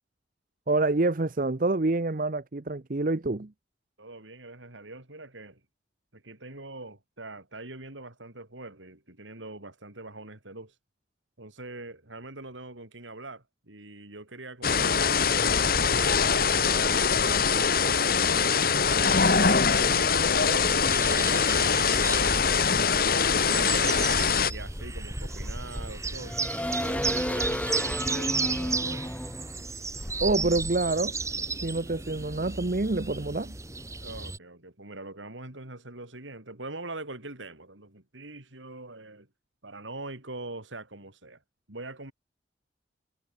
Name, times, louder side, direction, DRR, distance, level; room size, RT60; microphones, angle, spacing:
voice 1, 0.7-3.5 30.2-31.1 31.6-33.5, right 2 dB, 45° right, 0.8 m, -27 dB
voice 2, 4.0-5.6 6.1-10.7 11.4-18.6 19.0-24.1 24.5-26.4 26.8-29.1 34.0-39.3 39.6-41.4 41.7-42.1, right 2 dB, 85° right, 4.9 m, -43 dB
sound 1, 14.6-24.5, left 6 dB, 50° left, 1.6 m, -23 dB
sound 2, 15.5-17.8 18.8-21.4 21.9-30.7, equal, 5° left, 2.7 m, -35 dB
sound 3, 20.8-34.4, right 4 dB, 15° right, 1.6 m, -34 dB
head